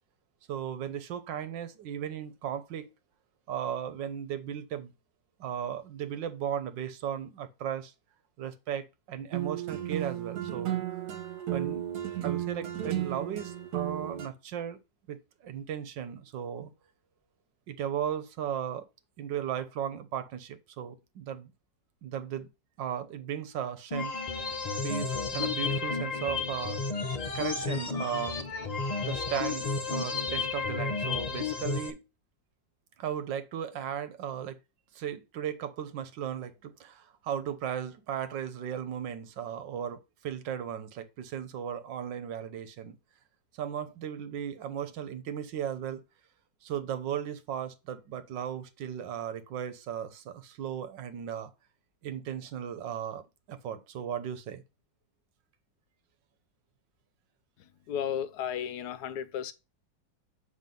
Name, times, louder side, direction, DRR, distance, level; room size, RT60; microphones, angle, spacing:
voice 1, 0.5-2.9 3.5-4.9 5.4-7.9 8.4-11.0 11.5-11.9 12.2-14.8 15.1-16.7 17.7-18.9 19.2-21.5 22.0-22.5 22.8-24.1 24.5-24.6 24.8-26.8 27.3-28.4 29.0-32.0 33.0-34.6 34.9-43.0 43.5-46.0 46.6-51.5 52.0-54.6, right 9 dB, 85° right, 1.5 m, -36 dB
sound 1, 9.3-14.3, right 12 dB, 65° right, 1.6 m, -33 dB
sound 2, 23.9-31.9, left 4 dB, 55° left, 0.4 m, -32 dB
voice 2, 57.9-59.5, left 9 dB, 70° left, 1.1 m, -33 dB
7.6 x 3.4 x 5.3 m
omnidirectional pair, 1.9 m